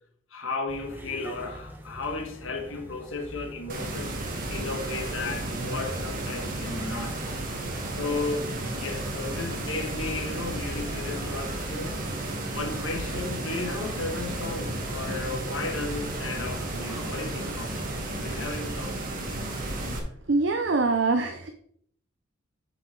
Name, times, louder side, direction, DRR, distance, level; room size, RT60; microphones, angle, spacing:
voice 1, 0.3-4.1 4.5-7.2 8.0-17.8 18.2-19.0, left 3 dB, 75° left, 1.5 m, -34 dB
sound 1, 0.7-18.6, equal, 10° right, 1.0 m, -44 dB
sound 2, 3.7-20.0, right 2 dB, 40° right, 1.6 m, -33 dB
voice 2, 20.3-21.5, right 3 dB, 60° right, 0.7 m, -24 dB
7.7 x 5.9 x 4.6 m
head